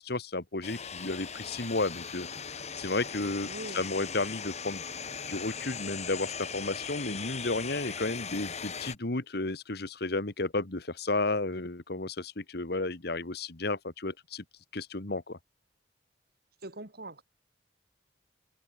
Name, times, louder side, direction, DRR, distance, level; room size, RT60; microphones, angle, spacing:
voice 1, 0.0-2.3 2.8-3.5 3.7-4.8 5.3-14.4 14.7-15.4, left 2 dB, 60° left, 1.6 m, -32 dB
sound 1, 0.6-8.9, left 6 dB, 40° left, 2.4 m, -39 dB
voice 2, 3.4-3.9 16.6-17.2, right 1 dB, 60° right, 3.7 m, -42 dB
head